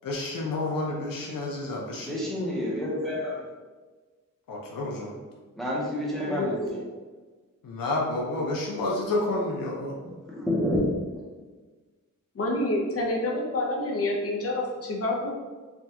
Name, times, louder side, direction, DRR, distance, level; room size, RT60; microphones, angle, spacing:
voice 1, 0.0-2.1 4.5-5.1 7.6-9.9, left 2 dB, 85° left, -2 dB, 0.6 m, -30 dB
voice 2, 2.0-3.4 5.6-6.8 10.3-10.9, left 1 dB, ahead, -6 dB, 0.7 m, -28 dB
voice 3, 6.3-6.8 12.3-15.3, left 1 dB, 45° left, -2 dB, 0.7 m, -28 dB
3.4 x 2.3 x 2.7 m, 1.3 s
wide cardioid pair, 130°, 33 cm